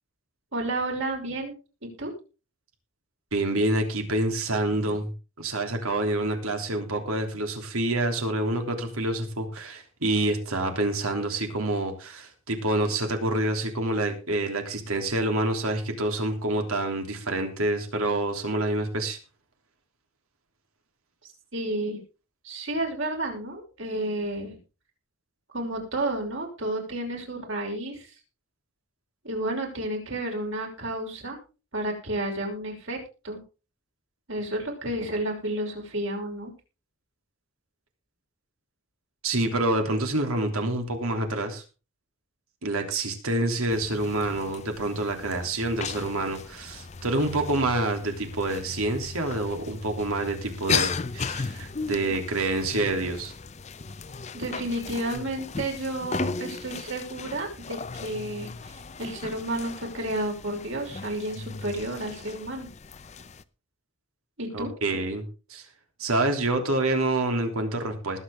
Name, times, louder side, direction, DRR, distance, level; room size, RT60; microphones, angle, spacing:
voice 1, 0.5-1.5 1.8-2.1 4.7-5.0 21.2-22.0 22.4-24.6 25.5-28.1 29.2-31.4 31.7-33.0 33.2-33.4 34.3-36.5 54.3-62.7 64.4-64.7, right 1 dB, 65° right, 1 dB, 5.6 m, -31 dB
voice 2, 3.3-5.1 5.4-19.2 39.2-41.6 42.6-53.3 64.5-65.2 65.5-65.6 66.0-68.2, right 2 dB, 85° right, 4 dB, 3.3 m, -27 dB
sound 1, 43.7-63.4, left 5 dB, 30° left, 0.6 m, -36 dB
20.0 x 8.1 x 3.7 m, 0.32 s
head